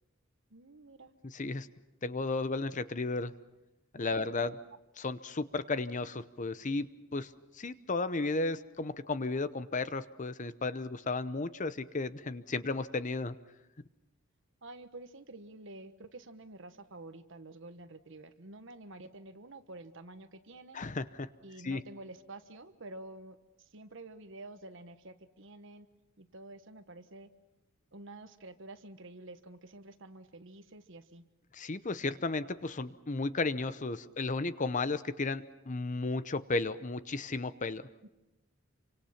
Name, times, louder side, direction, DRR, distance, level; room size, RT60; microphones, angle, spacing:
voice 1, 0.5-1.1 4.1-4.3 14.6-20.8 21.4-25.9 26.2-27.3 27.9-31.2 38.0-38.1, right 2 dB, 65° right, 10 dB, 1.3 m, -49 dB
voice 2, 1.2-1.7 2.0-3.3 3.9-4.6 5.0-7.3 7.6-13.4 20.7-21.3 21.6-21.8 31.5-37.9, left 3 dB, 40° left, 13 dB, 0.8 m, -34 dB
28.0 x 25.0 x 5.9 m, 0.97 s
head